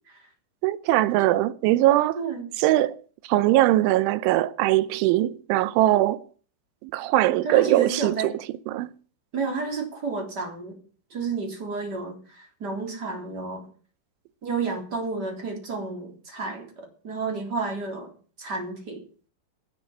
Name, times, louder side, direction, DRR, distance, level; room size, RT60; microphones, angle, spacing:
voice 1, 0.6-2.2 2.6-3.0 3.2-6.2 6.8-8.3 8.7-8.9, right 15 dB, 90° right, 3.2 m, -21 dB
voice 2, 2.2-2.5 7.4-8.3 9.3-10.8 11.1-13.7 14.4-18.1 18.4-19.0, right 4 dB, 25° right, 3.6 m, -31 dB
10.0 x 9.6 x 9.6 m
omnidirectional pair, 5.3 m